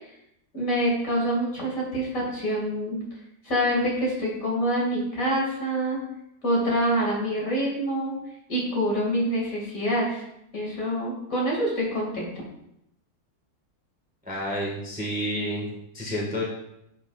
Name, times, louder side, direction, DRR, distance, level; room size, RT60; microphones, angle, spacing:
voice 1, 0.5-3.0 3.4-6.0 6.4-8.2 8.5-10.2 10.5-12.3, equal, 60° left, -3 dB, 2.6 m, -26 dB
voice 2, 14.2-16.4, equal, 5° right, -4 dB, 1.4 m, -30 dB
9.9 x 5.9 x 2.4 m, 0.80 s
omnidirectional pair, 1.7 m